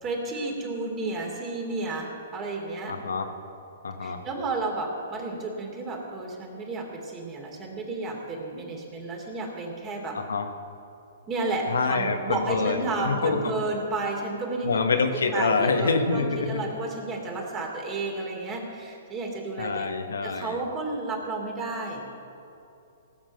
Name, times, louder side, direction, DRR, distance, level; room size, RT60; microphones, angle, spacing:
voice 1, 0.0-3.0 4.0-10.2 11.3-14.8 15.3-19.9 20.2-22.0, right 3 dB, 25° right, 0 dB, 2.9 m, -32 dB
voice 2, 2.9-3.3 3.8-4.2 10.1-10.5 11.7-13.5 14.6-16.6 19.6-20.6, left 4 dB, 85° left, 5 dB, 1.3 m, -26 dB
18.0 x 7.4 x 6.6 m, 2.7 s
hypercardioid pair, 130°, 0 cm